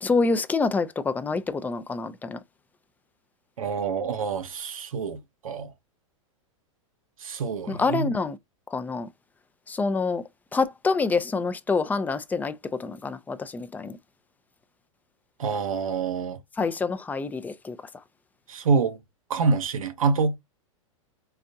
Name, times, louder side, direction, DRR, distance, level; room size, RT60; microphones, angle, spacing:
voice 1, 0.0-2.4 7.7-8.4 8.7-9.1 9.7-10.2 10.5-14.0 16.6-17.8, left 4 dB, 10° left, 0.4 m, -26 dB
voice 2, 3.6-5.7 7.2-8.1 15.4-16.4 18.5-19.0 19.3-20.4, right 5 dB, 85° right, 0.8 m, -26 dB
4.2 x 2.3 x 2.6 m
hypercardioid pair, 115°, 17 cm